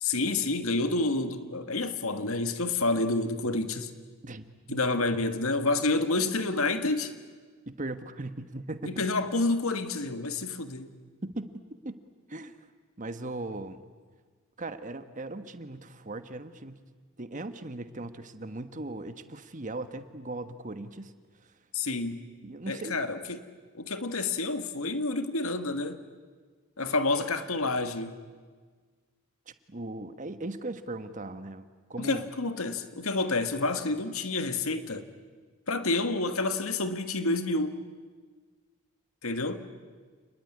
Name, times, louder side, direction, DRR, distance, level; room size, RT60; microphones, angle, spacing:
voice 1, 0.0-3.9 4.7-7.1 8.8-10.9 21.7-22.2 22.7-23.4 23.8-26.0 26.8-28.2 32.0-35.1 35.7-37.8 39.2-39.6, left 2 dB, 80° left, 1.7 m, -29 dB
voice 2, 4.2-4.8 7.7-9.1 11.2-12.0 12.3-12.5 13.0-13.8 14.6-16.9 17.2-21.1 22.4-23.0 29.5-31.6 31.9-32.3, right 2 dB, 35° right, 1.3 m, -38 dB
29.0 x 20.0 x 9.8 m
head